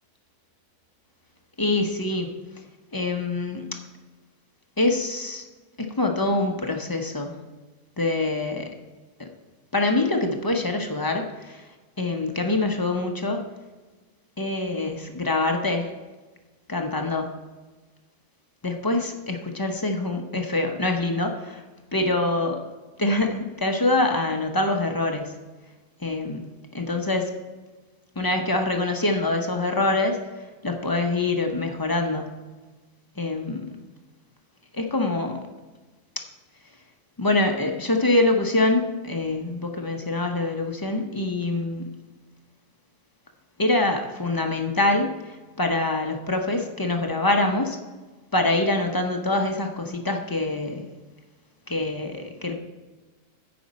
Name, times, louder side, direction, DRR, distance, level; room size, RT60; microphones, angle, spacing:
voice 1, 1.6-2.3 2.9-3.7 4.8-5.4 5.8-7.3 8.0-8.7 9.2-9.3 9.7-11.6 12.0-13.4 14.4-15.9 16.7-17.3 18.6-21.6 21.9-22.6 23.0-25.3 26.0-26.5 26.7-27.3 28.2-30.2 30.6-32.3 33.2-33.7 34.7-35.4 37.2-41.9 43.6-47.8 48.3-50.9 51.7-52.5, left 2 dB, 35° left, 3 dB, 0.3 m, -25 dB
15.0 x 5.2 x 4.1 m, 1.2 s
omnidirectional pair, 1.7 m